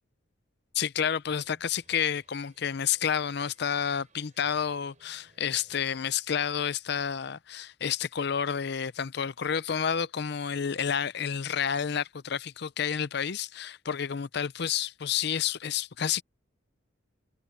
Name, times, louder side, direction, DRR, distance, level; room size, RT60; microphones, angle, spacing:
voice 1, 0.7-16.2, left 8 dB, 60° left, 0.6 m, -30 dB
sound 1, 1.3-6.3, right 2 dB, 40° right, 6.8 m, -65 dB
head